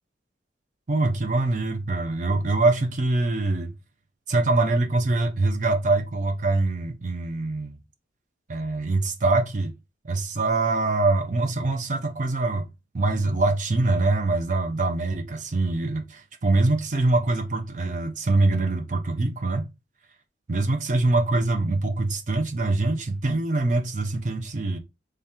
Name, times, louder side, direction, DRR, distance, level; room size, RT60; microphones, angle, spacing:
voice 1, 0.9-3.7 4.3-7.8 8.5-9.7 10.0-12.7 12.9-19.7 20.5-24.8, right 2 dB, 40° right, 0.6 m, -24 dB
3.3 x 2.8 x 3.6 m
head